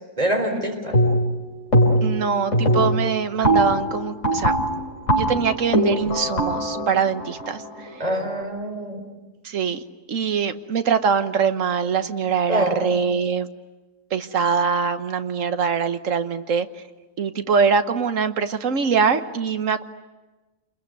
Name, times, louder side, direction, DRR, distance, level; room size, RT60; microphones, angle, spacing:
voice 1, 0.2-1.0 2.0-2.1 8.0-9.0 12.5-12.9, equal, 30° right, 3 dB, 4.4 m, -25 dB
sound 1, 0.9-1.4 1.7-2.2 2.5-8.3, equal, 70° left, 4.7 m, -21 dB
voice 2, 2.0-4.5 5.1-7.9 9.4-9.8 10.1-13.5 14.1-16.7 17.2-19.8, right 6 dB, 80° right, 9 dB, 1.5 m, -23 dB
29.0 x 22.0 x 9.4 m, 1.2 s
omnidirectional pair, 1.4 m